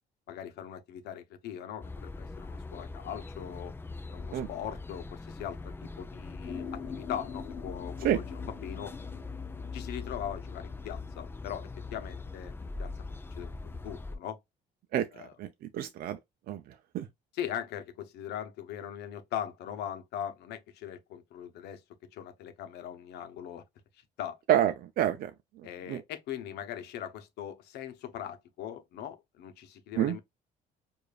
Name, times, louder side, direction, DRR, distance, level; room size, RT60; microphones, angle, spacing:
voice 1, 0.3-3.7 4.1-8.9 9.7-12.5 12.8-12.9 13.3-14.4 15.1-15.3 17.3-21.8 22.1-23.6 24.2-24.4 25.6-30.2, left 10 dB, 80° left, 0.9 m, -40 dB
sound 1, 1.8-14.2, left 3 dB, 15° left, 0.5 m, -42 dB
sound 2, 6.4-13.9, left 6 dB, 55° left, 0.7 m, -46 dB
voice 2, 15.7-16.2 16.5-17.1 24.5-25.3 25.9-26.0 30.0-30.2, right 11 dB, 60° right, 0.5 m, -28 dB
4.9 x 2.6 x 2.4 m
cardioid pair, 110°, 17 cm